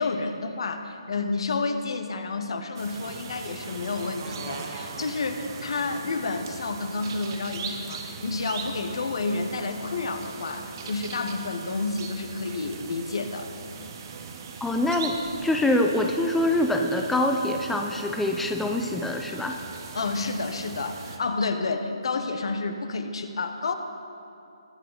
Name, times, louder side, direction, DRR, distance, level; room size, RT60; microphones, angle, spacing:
voice 1, 0.0-13.6 19.9-23.7, left 3 dB, 65° left, 7 dB, 1.2 m, -30 dB
sound 1, 2.7-21.2, right 5 dB, 40° right, 1.2 m, -40 dB
voice 2, 14.6-19.6, left 1 dB, 5° left, 3 dB, 0.5 m, -25 dB
21.0 x 7.7 x 4.1 m, 2.7 s
figure-of-eight pair, 150°, 3 cm